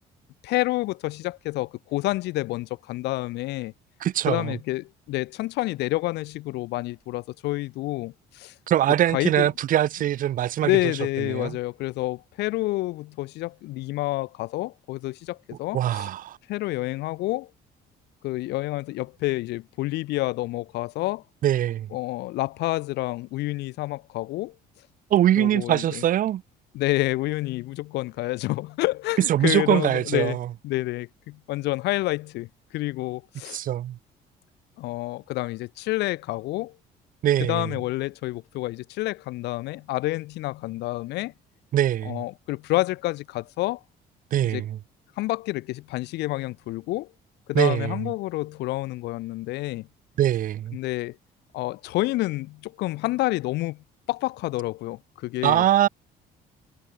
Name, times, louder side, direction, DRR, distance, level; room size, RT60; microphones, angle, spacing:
voice 1, 0.4-3.7 4.3-8.5 9.1-9.5 10.6-16.1 16.5-17.5 18.2-21.2 21.9-24.5 25.4-26.0 26.7-30.4 30.6-33.6 34.8-36.7 37.4-41.3 42.0-43.8 44.5-44.6 45.2-47.1 47.5-49.9 50.7-51.1 51.5-53.8 54.1-55.6, left 19 dB, 85° left, 1.5 m, -28 dB
voice 2, 4.0-4.5 8.7-10.7 11.3-11.6 15.7-16.4 21.4-21.9 25.1-26.4 29.3-30.5 33.5-34.0 37.2-37.7 41.7-42.2 44.3-44.8 47.5-48.0 50.2-50.8 55.4-55.9, right 12 dB, 55° right, 0.8 m, -22 dB
cardioid pair, 110°, 17 cm